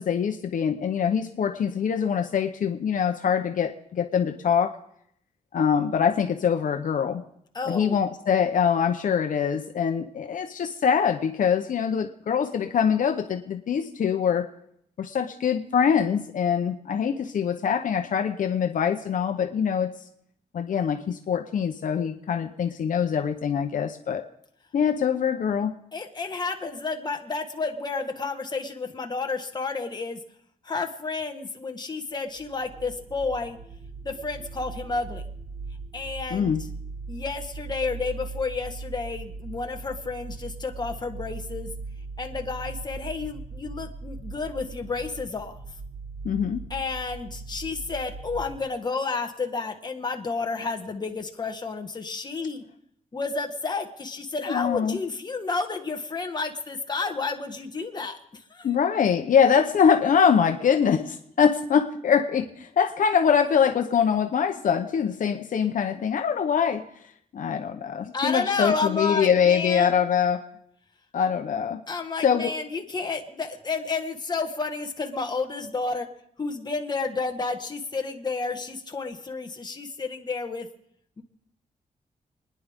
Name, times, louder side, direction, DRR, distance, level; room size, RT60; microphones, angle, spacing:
voice 1, 0.0-4.8 5.5-7.2 7.7-14.5 15.0-19.9 20.5-24.2 24.7-25.7 36.3-36.6 46.2-46.6 54.4-55.0 58.6-66.8 67.3-70.4 71.1-71.8 72.2-72.5, left 7 dB, 70° left, 5 dB, 0.9 m, -24 dB
voice 2, 7.5-8.0 25.9-30.2 30.6-33.6 34.0-35.2 35.9-36.6 37.1-41.7 42.2-45.6 46.7-52.6 53.1-58.7 68.1-69.9 71.9-76.1 76.4-80.7 81.2-81.3, left 4 dB, 30° left, 3 dB, 1.5 m, -31 dB
sound 1, 32.3-48.7, right 4 dB, 40° right, 1.4 m, -39 dB
29.0 x 10.5 x 3.6 m, 0.71 s
wide cardioid pair, 130°, 14 cm